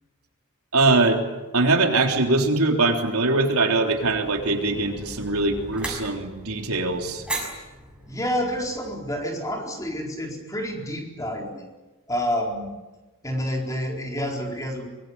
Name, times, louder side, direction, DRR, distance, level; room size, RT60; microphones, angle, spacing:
voice 1, 0.7-1.2 1.5-7.2, right 3 dB, 80° right, 3 dB, 3.6 m, -22 dB
sound 1, 3.9-9.3, right 2 dB, 5° right, 6.3 m, -38 dB
voice 2, 8.1-11.6 12.1-12.7 13.2-14.9, equal, 15° left, 1 dB, 4.3 m, -28 dB
24.0 x 22.5 x 9.7 m, 1.2 s
head